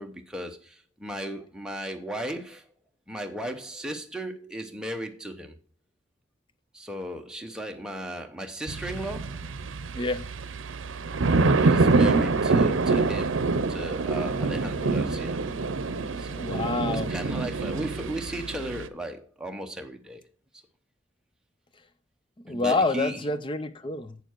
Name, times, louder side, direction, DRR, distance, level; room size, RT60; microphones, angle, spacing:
voice 1, 0.0-2.6 3.1-5.5 6.7-9.5 11.3-15.4 16.2-20.2 22.5-23.2, right 1 dB, 5° right, 0.9 m, -36 dB
sound 1, 8.7-18.9, right 3 dB, 85° right, 0.6 m, -25 dB
voice 2, 9.9-10.2 16.4-17.1 22.5-24.2, left 3 dB, 25° left, 0.5 m, -27 dB
8.1 x 6.9 x 4.5 m
head